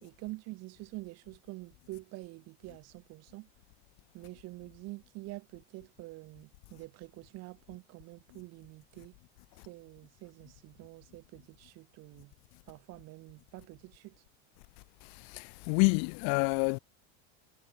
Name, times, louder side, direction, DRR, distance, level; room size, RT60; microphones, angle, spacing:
voice 1, 0.0-3.5 4.1-9.1 9.7-12.3 12.7-14.2, right 21 dB, 50° right, 3.7 m, -47 dB
voice 2, 15.3-16.8, left 40 dB or more, 60° left, 0.8 m, -27 dB
supercardioid pair, 140°, 33 cm